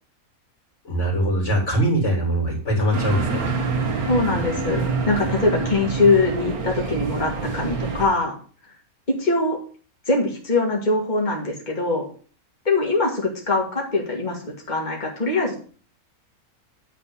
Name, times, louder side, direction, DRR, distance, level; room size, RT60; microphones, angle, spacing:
voice 1, 0.8-3.5, right 1 dB, 50° left, -1 dB, 4.0 m, -22 dB
sound 1, 2.9-8.1, right 4 dB, 80° right, 1.9 m, -26 dB
voice 2, 4.1-8.3 9.2-9.6 10.1-12.1 12.6-15.6, left 3 dB, 30° left, -1 dB, 2.5 m, -22 dB
9.4 x 4.3 x 7.2 m, 0.41 s
omnidirectional pair, 1.5 m